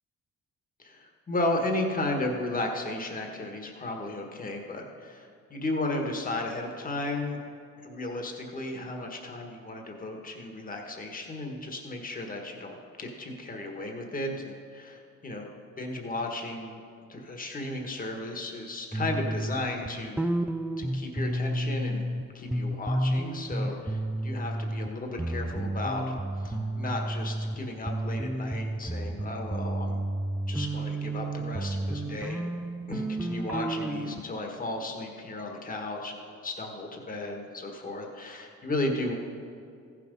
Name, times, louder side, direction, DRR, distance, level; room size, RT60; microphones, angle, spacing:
voice 1, 0.8-7.4 7.8-15.5 15.8-16.8 17.1-20.3 20.8-22.1 22.3-26.1 26.4-30.0 30.5-32.5 32.9-39.1, left 2 dB, 30° left, 2 dB, 1.5 m, -34 dB
sound 1, 18.9-22.2 22.5-24.9 25.2-27.6 27.9-34.2, right 1 dB, 5° right, 0.4 m, -31 dB
14.5 x 6.1 x 5.3 m, 2.3 s
cardioid pair, 90°, 30 cm